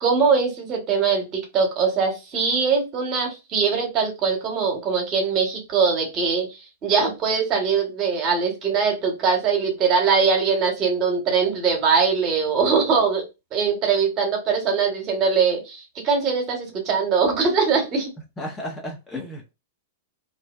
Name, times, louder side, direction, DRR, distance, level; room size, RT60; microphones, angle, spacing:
voice 1, 0.0-6.5 6.8-13.3 13.5-18.1, right 5 dB, 35° right, 1.1 m, -22 dB
voice 2, 18.4-19.5, left 1 dB, 15° left, 0.7 m, -33 dB
2.5 x 2.1 x 2.3 m
figure-of-eight pair, 105°, 0 cm